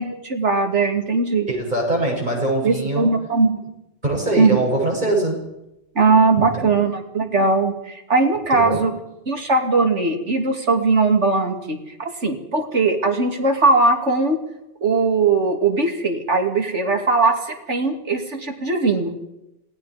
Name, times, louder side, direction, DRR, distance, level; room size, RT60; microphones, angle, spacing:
voice 1, 0.0-1.5 2.6-3.6 4.4-4.6 5.9-8.9 9.3-14.4 14.8-19.1, right 3 dB, 75° right, 4 dB, 3.0 m, -19 dB
voice 2, 1.5-3.1 4.0-5.4 6.4-6.8 8.5-8.9, right 1 dB, 40° right, -1 dB, 8.1 m, -23 dB
27.0 x 19.5 x 5.1 m, 0.88 s
omnidirectional pair, 1.2 m